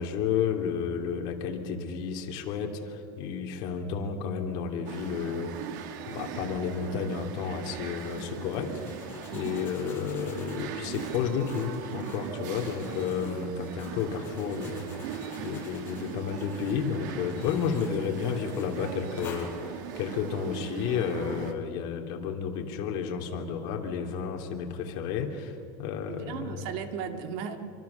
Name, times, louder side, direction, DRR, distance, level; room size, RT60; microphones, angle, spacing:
voice 1, 0.0-5.6 6.0-8.8 9.3-26.6, left 6 dB, 55° left, 3 dB, 2.8 m, -32 dB
sound 1, 4.9-21.5, right 9 dB, 80° right, 2.1 m, -40 dB
sound 2, 7.8-20.2, left 5 dB, 20° left, 5.3 m, -48 dB
voice 2, 26.1-27.6, right 7 dB, 60° right, 6 dB, 2.1 m, -36 dB
26.0 x 24.5 x 7.0 m, 2.6 s
cardioid pair, 160°, 10 cm